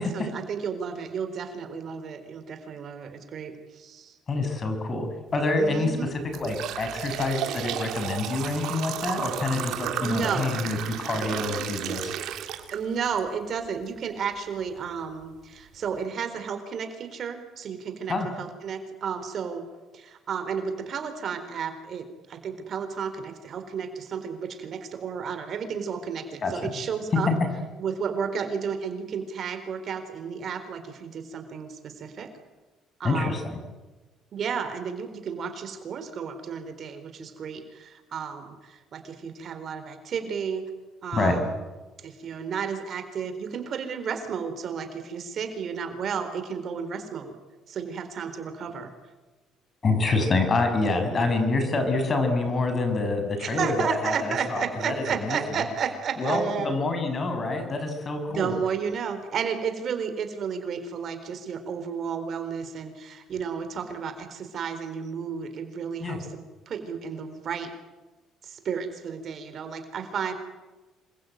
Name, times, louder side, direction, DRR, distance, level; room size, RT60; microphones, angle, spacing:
voice 1, 0.0-4.1 5.6-6.1 10.0-10.6 12.7-19.6 19.9-27.3 27.8-32.3 33.0-33.5 34.3-40.6 41.0-41.6 42.0-47.3 47.7-48.9 51.1-51.3 53.4-56.7 58.3-66.3 66.7-67.7 68.4-70.3, right 6 dB, 50° right, 9 dB, 4.0 m, -32 dB
voice 2, 4.3-5.1 5.3-6.0 6.3-12.2 18.1-18.3 26.4-26.7 33.0-33.6 41.1-41.3 49.8-55.4 56.2-58.5 66.0-66.2, left 3 dB, 35° left, 6 dB, 7.0 m, -27 dB
sound 1, 5.4-5.6 6.1-13.2 13.6-13.7 14.6-14.7 15.2-15.3 15.7-16.0, right 11 dB, 75° right, 2.9 m, -33 dB
27.5 x 22.5 x 9.3 m, 1.2 s
cardioid pair, 120°, 0 cm